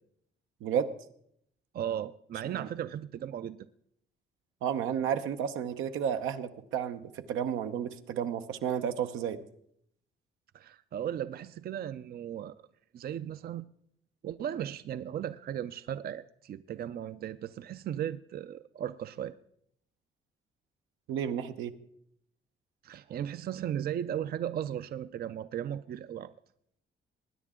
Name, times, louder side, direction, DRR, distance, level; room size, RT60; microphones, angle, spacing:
voice 1, 1.7-3.7 10.5-12.5 12.9-13.7 14.2-19.3 22.8-26.3, right 10 dB, 50° right, 0.5 m, -36 dB
voice 2, 4.6-9.4 21.1-21.7, right 8 dB, 90° right, 0.8 m, -32 dB
20.5 x 9.7 x 3.7 m
cardioid pair, 90°, 20 cm